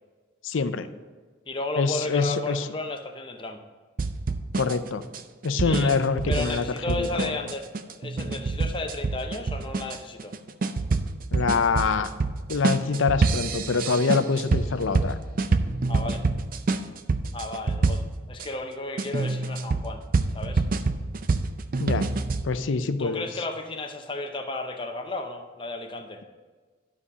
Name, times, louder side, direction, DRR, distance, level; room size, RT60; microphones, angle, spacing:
voice 1, 0.4-0.9 1.8-2.6 4.6-5.0 5.4-7.3 11.3-12.1 12.5-15.2 21.8-22.1 22.4-23.2, left 4 dB, 75° left, 11 dB, 0.5 m, -25 dB
voice 2, 1.5-3.6 5.6-6.0 6.3-7.7 8.0-10.3 15.9-16.2 17.3-18.0 18.3-20.0 20.3-20.6 23.0-26.2, left 2 dB, 25° left, 5 dB, 0.7 m, -33 dB
sound 1, 4.0-18.5 19.0-22.4, right 3 dB, 45° right, 0.4 m, -27 dB
12.0 x 4.2 x 5.0 m, 1.4 s
head